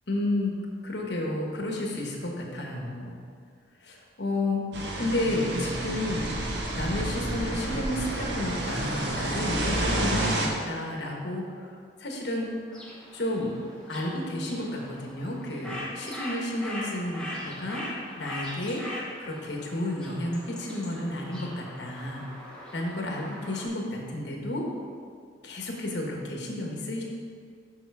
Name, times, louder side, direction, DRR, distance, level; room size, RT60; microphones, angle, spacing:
voice 1, 0.1-0.6 0.8-3.2 3.8-4.7 5.0-6.3 6.7-11.7 12.0-12.5 13.1-13.6 13.9-17.8 18.2-18.8 19.2-22.2 22.7-24.7 25.4-27.0, left 1 dB, 65° left, 0 dB, 1.3 m, -31 dB
sound 1, 4.7-10.5, right 1 dB, 65° right, 1.0 m, -29 dB
sound 2, 12.7-23.7, left 1 dB, 5° left, 1.0 m, -41 dB
7.1 x 6.1 x 4.8 m, 2.1 s
head